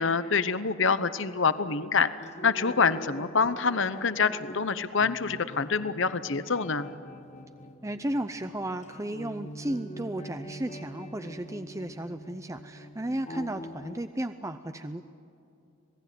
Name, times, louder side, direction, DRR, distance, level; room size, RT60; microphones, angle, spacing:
voice 1, 0.0-6.9, left 5 dB, 65° left, 13 dB, 0.9 m, -26 dB
sound 1, 2.2-14.0, equal, 35° left, 1.2 m, -44 dB
voice 2, 7.8-15.0, right 1 dB, 15° right, 9 dB, 0.6 m, -34 dB
26.5 x 19.0 x 9.4 m, 2.7 s
head